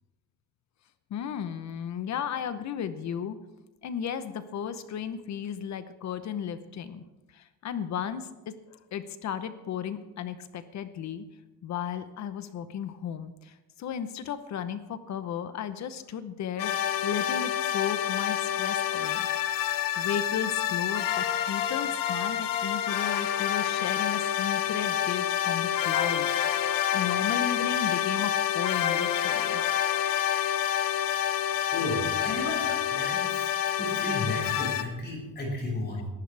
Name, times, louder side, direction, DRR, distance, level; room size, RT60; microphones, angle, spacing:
voice 1, 1.1-3.4 3.8-7.0 7.3-11.2 11.6-16.7 17.0-19.3 19.5-26.3 26.6-29.6, left 8 dB, 55° left, 11 dB, 0.9 m, -35 dB
sound 1, 16.6-34.8, left 10 dB, 75° left, 1.1 m, -28 dB
voice 2, 31.2-36.1, left 2 dB, 30° left, -2 dB, 5.9 m, -34 dB
22.0 x 12.0 x 3.4 m, 1.1 s
cardioid pair, 135°, 34 cm